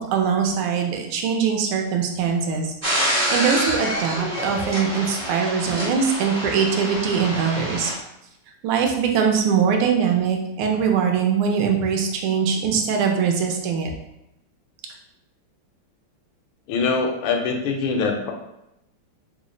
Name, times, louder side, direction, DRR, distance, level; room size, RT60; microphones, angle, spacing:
voice 1, 0.0-2.7 3.3-7.9 8.6-13.9, right 6 dB, 80° right, 2 dB, 1.4 m, -22 dB
sound 1, 2.8-7.9, equal, 35° right, 0.6 m, -27 dB
voice 2, 16.7-18.3, left 4 dB, 75° left, 2 dB, 1.3 m, -23 dB
3.7 x 2.0 x 3.7 m, 0.86 s
omnidirectional pair, 2.4 m